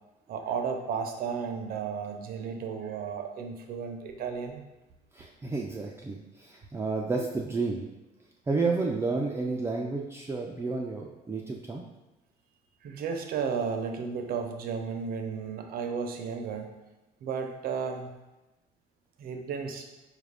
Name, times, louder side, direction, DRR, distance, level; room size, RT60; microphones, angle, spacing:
voice 1, 0.3-4.7 12.8-16.7 17.2-18.2 19.2-19.9, right 6 dB, 60° right, 5 dB, 0.6 m, -33 dB
voice 2, 5.1-7.9 8.5-11.8, right 3 dB, 15° right, -1 dB, 0.3 m, -31 dB
4.7 x 2.4 x 3.4 m, 1.0 s
cardioid pair, 110°, 17 cm